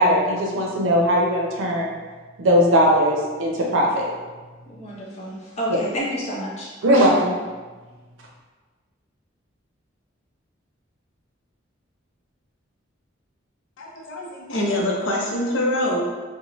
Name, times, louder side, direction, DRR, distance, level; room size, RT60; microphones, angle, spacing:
voice 1, 0.0-1.9 2.4-4.1 6.8-7.3, equal, 85° right, -2 dB, 0.6 m, -19 dB
voice 2, 4.7-6.7, equal, 35° left, -6 dB, 0.7 m, -29 dB
voice 3, 13.8-16.0, left 1 dB, 80° left, -3 dB, 0.6 m, -24 dB
2.6 x 2.1 x 3.0 m, 1.3 s
head